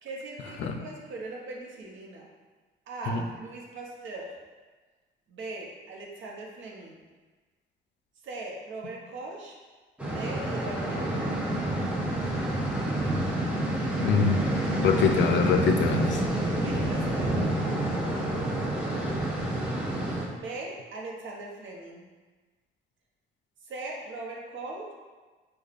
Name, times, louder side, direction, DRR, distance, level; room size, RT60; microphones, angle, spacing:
voice 1, 0.0-2.3 2.9-4.3 5.3-7.0 8.2-9.6 10.1-11.2 16.6-17.4 20.3-22.1 23.6-24.9, right 2 dB, 75° right, -1 dB, 0.8 m, -40 dB
sound 1, 10.0-20.2, right 1 dB, 5° right, 0.7 m, -28 dB
voice 2, 14.0-14.4 14.8-16.2, left 6 dB, 70° left, 5 dB, 0.4 m, -24 dB
4.9 x 2.3 x 2.4 m, 1.3 s
cardioid pair, 90°, 20 cm